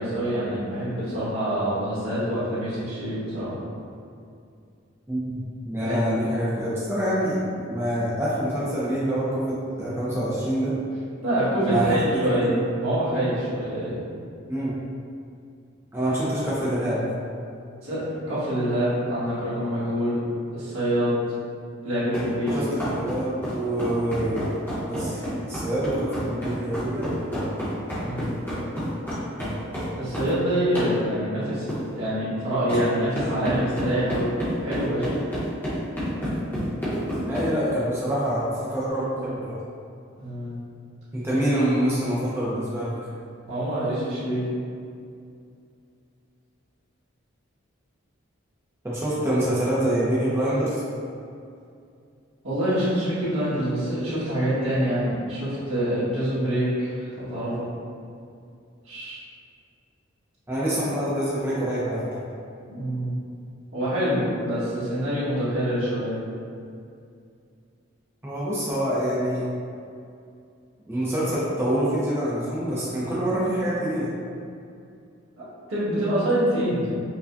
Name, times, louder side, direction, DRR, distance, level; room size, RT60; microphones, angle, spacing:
voice 1, 0.0-3.5 5.8-5.9 11.2-14.0 17.8-20.2 20.5-21.2 21.8-22.5 28.0-28.4 29.9-35.1 40.2-40.6 43.5-44.4 52.4-57.7 58.8-59.2 62.7-63.1 63.7-66.2 75.4-76.9, equal, 85° right, -11 dB, 1.5 m, -26 dB
voice 2, 5.6-10.7 11.7-12.4 14.5-14.8 15.9-17.0 22.5-24.5 24.9-27.6 37.3-39.6 41.1-42.9 48.8-50.8 60.5-62.0 68.2-69.5 70.9-74.1, right 1 dB, 10° right, -8 dB, 0.6 m, -26 dB
sound 1, 22.1-30.3 30.7-31.0 31.7-31.8 32.7-32.8 33.1-37.5, equal, 10° left, 0.9 m, -29 dB
4.8 x 2.3 x 2.5 m, 2.4 s
head